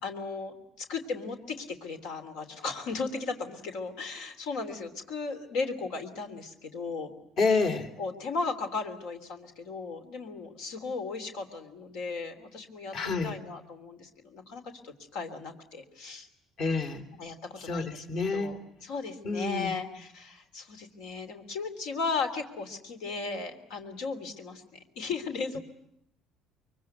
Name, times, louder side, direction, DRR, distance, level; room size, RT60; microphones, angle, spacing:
voice 1, 0.0-7.1 8.0-16.3 17.2-18.0 18.3-25.6, left 4 dB, 85° left, 7 dB, 3.2 m, -36 dB
voice 2, 7.4-7.9 12.9-13.3 16.6-17.0 17.6-18.6 19.2-19.7, left 4 dB, 55° left, 6 dB, 3.4 m, -28 dB
24.0 x 23.5 x 9.4 m, 0.76 s
cardioid pair, 120°, 0 cm